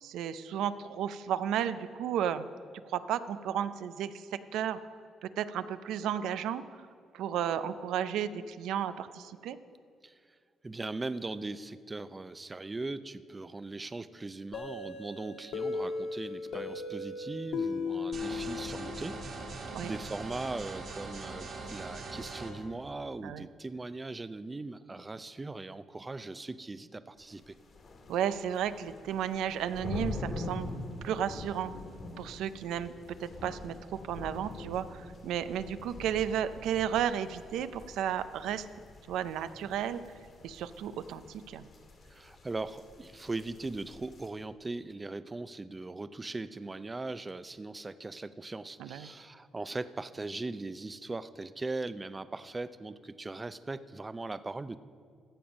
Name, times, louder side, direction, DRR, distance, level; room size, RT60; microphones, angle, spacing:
voice 1, 0.0-2.5 2.9-4.8 5.2-6.6 7.1-9.6 19.7-19.9 23.2-23.5 28.1-30.7 31.0-31.7 32.2-32.9 33.2-38.7 39.1-40.0 40.4-41.7 48.8-49.1, right 9 dB, 85° right, 13 dB, 0.4 m, -33 dB
voice 2, 10.6-19.1 19.8-27.5 42.0-54.8, right 3 dB, 20° right, 14 dB, 0.4 m, -39 dB
sound 1, 14.5-19.2, left 4 dB, 75° left, 1.4 m, -36 dB
sound 2, 18.1-22.5, right 3 dB, 55° right, 1.8 m, -41 dB
sound 3, 27.2-44.3, left 2 dB, 50° left, 1.8 m, -45 dB
14.5 x 7.0 x 5.1 m, 2.2 s
cardioid pair, 90°, 0 cm